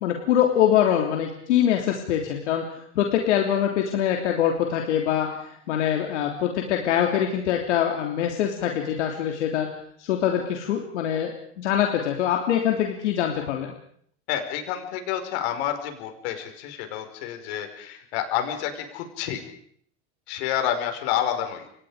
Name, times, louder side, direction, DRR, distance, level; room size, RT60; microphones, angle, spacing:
voice 1, 0.0-5.4 5.7-9.7 10.0-13.7, left 10 dB, 90° left, 2 dB, 3.4 m, -24 dB
voice 2, 14.3-19.4 20.3-21.7, left 10 dB, 70° left, 6 dB, 5.6 m, -29 dB
29.5 x 24.5 x 5.1 m, 0.63 s
supercardioid pair, 125°, 34 cm